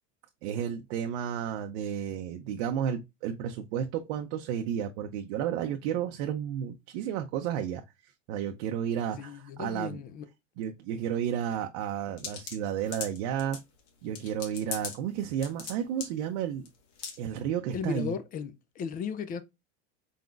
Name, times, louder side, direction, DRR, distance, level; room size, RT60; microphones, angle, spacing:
voice 1, 0.4-10.0 10.6-13.6 14.0-16.7 17.2-18.1, right 9 dB, 65° right, 0.6 m, -32 dB
voice 2, 9.2-10.3 17.7-19.4, left 6 dB, 25° left, 0.3 m, -35 dB
sound 1, 12.2-13.6 14.2-15.0 15.2-15.7 16.0-16.1 16.7-16.8 17.0-17.2, left 6 dB, 70° left, 1.6 m, -38 dB
4.2 x 3.9 x 2.3 m
supercardioid pair, 135°, 37 cm